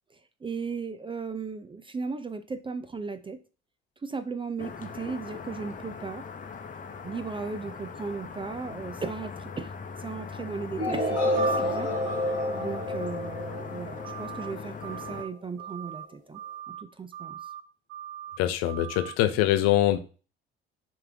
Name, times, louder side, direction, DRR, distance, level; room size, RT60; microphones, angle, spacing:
voice 1, 0.4-3.4 4.0-6.3 7.0-9.7 10.0-11.9 12.6-16.4 16.7-17.4, right 4 dB, 15° right, 12 dB, 0.5 m, -36 dB
sound 1, 4.6-15.2, left 5 dB, 25° left, 1.0 m, -40 dB
sound 2, 10.8-14.7, equal, 90° left, 1.9 m, -29 dB
sound 3, 14.0-14.5 14.8-15.3 15.6-16.1 16.3-16.8 17.1-17.6 17.9-18.4 18.7-19.2, right 11 dB, 45° right, 0.8 m, -41 dB
voice 2, 18.4-20.0, left 13 dB, 50° left, 9 dB, 0.8 m, -23 dB
10.0 x 3.5 x 3.5 m, 0.36 s
figure-of-eight pair, 55°, 33 cm